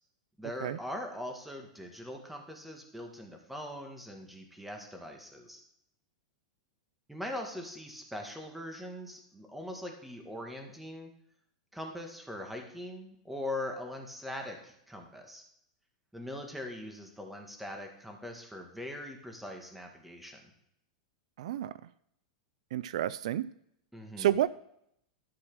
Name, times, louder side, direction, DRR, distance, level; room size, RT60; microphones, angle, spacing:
voice 1, 0.4-5.6 7.1-11.1 11.7-15.4 16.1-20.4 23.9-24.3, left 1 dB, 5° right, 3 dB, 1.9 m, -41 dB
voice 2, 21.4-21.7 22.7-23.5 24.2-24.5, right 12 dB, 75° right, 18 dB, 0.4 m, -29 dB
12.0 x 4.7 x 6.2 m, 0.74 s
hypercardioid pair, 125°, 3 cm